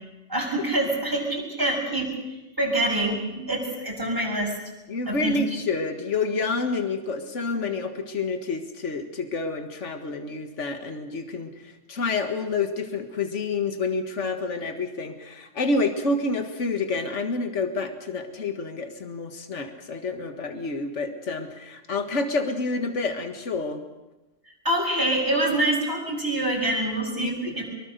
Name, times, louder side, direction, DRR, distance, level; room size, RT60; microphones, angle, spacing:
voice 1, 0.3-2.1 2.6-4.6 5.1-5.4 24.6-27.6, right 1 dB, 15° right, -1 dB, 6.8 m, -25 dB
voice 2, 4.9-23.8 27.2-27.6, left 3 dB, 70° left, 7 dB, 2.1 m, -28 dB
24.5 x 23.0 x 6.8 m, 1.1 s
omnidirectional pair, 1.3 m